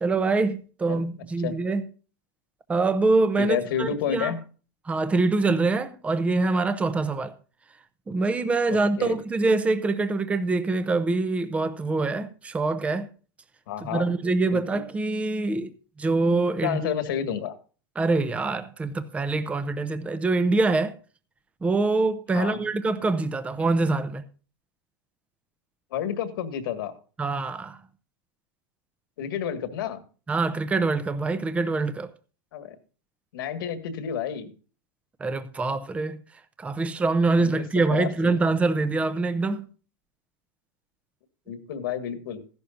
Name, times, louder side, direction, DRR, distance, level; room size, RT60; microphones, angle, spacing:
voice 1, 0.0-1.8 2.7-4.3 4.8-7.3 8.1-13.1 13.8-16.8 18.0-20.9 21.6-24.2 27.2-27.8 30.3-32.1 35.2-36.2 36.6-39.7, right 3 dB, 10° right, 0.7 m, -25 dB
voice 2, 3.4-4.4 8.7-9.2 13.7-14.1 14.5-14.8 16.6-17.5 22.3-22.6 25.9-26.9 29.2-30.0 32.5-32.8 33.3-34.5 37.4-37.6 37.9-38.4 41.5-42.4, left 8 dB, 80° left, 1.8 m, -30 dB
15.0 x 11.5 x 2.6 m
supercardioid pair, 140°, 12 cm